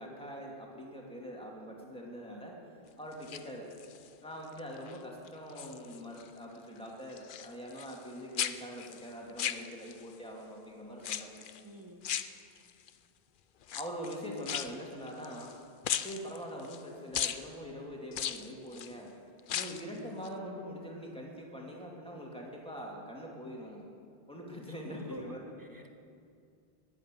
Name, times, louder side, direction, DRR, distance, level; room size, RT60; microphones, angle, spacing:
voice 1, 0.0-2.6 3.0-3.7 4.2-11.3 13.7-15.5 16.0-19.1 19.5-23.9 24.3-25.4, equal, 5° left, -2 dB, 2.5 m, -43 dB
sound 1, 3.1-4.1 4.6-5.0 5.3-6.3 6.6-8.1 8.4-10.1 11.0-11.6 12.0-12.9 13.6-15.6 15.8-16.8 17.1-17.4 18.1-18.9 19.4-19.9 20.2-20.3, left 9 dB, 60° left, 0.7 m, -37 dB
voice 2, 11.6-12.1 24.7-25.9, right 1 dB, 20° right, 5 dB, 1.2 m, -49 dB
20.0 x 8.3 x 7.6 m, 2.4 s
omnidirectional pair, 1.1 m